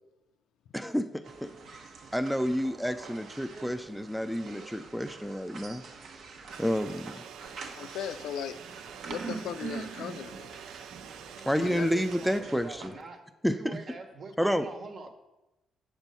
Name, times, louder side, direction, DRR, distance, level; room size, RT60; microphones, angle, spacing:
voice 1, 0.7-1.5 2.1-5.8 6.6-7.2 11.5-12.9 13.4-13.8 14.4-14.7, equal, ahead, 9 dB, 0.4 m, -29 dB
sound 1, 1.2-12.9, right 4 dB, 65° right, 1.1 m, -45 dB
sound 2, 6.5-12.4, right 8 dB, 80° right, 0.5 m, -47 dB
voice 2, 7.8-8.6 9.1-10.6 11.6-11.9, left 8 dB, 80° left, 11 dB, 0.5 m, -37 dB
voice 3, 11.9-13.2 13.5-15.1, right 3 dB, 50° right, 5 dB, 1.4 m, -44 dB
7.8 x 4.4 x 6.8 m, 0.98 s
cardioid pair, 90°, 0 cm